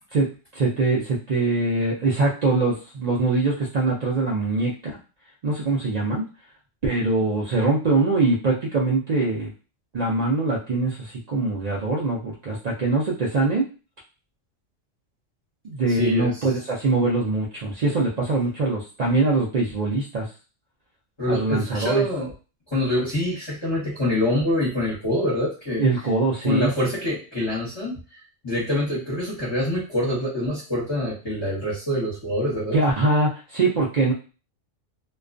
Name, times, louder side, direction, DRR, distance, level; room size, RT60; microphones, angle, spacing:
voice 1, 0.5-5.0 5.4-6.2 6.8-9.5 9.9-13.6 15.6-20.3 21.3-22.0 25.8-26.7 32.7-34.1, right 3 dB, 65° right, -4 dB, 0.4 m, -23 dB
voice 2, 16.0-16.3 21.2-22.3 22.7-25.8 26.4-32.8, left 1 dB, 25° left, -7 dB, 0.8 m, -25 dB
2.3 x 2.2 x 2.4 m, 0.34 s
omnidirectional pair, 1.3 m